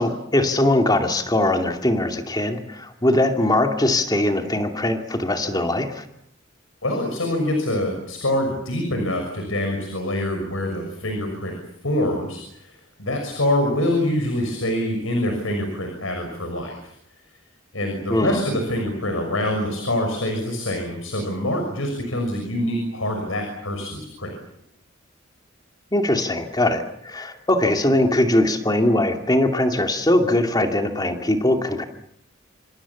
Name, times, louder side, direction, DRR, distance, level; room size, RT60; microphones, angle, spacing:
voice 1, 0.0-6.1 18.1-18.4 25.9-31.8, left 1 dB, 20° left, 5 dB, 2.5 m, -21 dB
voice 2, 6.8-11.5 11.8-16.8 17.7-24.3, left 1 dB, 85° left, 4 dB, 6.2 m, -25 dB
27.0 x 25.5 x 7.2 m, 0.74 s
head